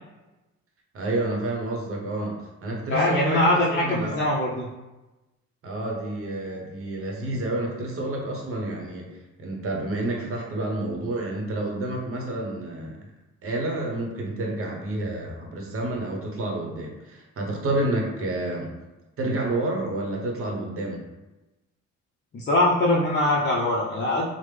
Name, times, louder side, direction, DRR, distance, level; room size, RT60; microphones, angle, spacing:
voice 1, 0.9-4.2 5.6-13.0 13.4-18.7 19.2-21.0, right 2 dB, 45° right, 0 dB, 0.9 m, -29 dB
voice 2, 2.9-4.7 22.3-24.3, left 1 dB, 35° left, -5 dB, 0.6 m, -22 dB
3.3 x 2.1 x 3.3 m, 1.1 s
cardioid pair, 90°, 30 cm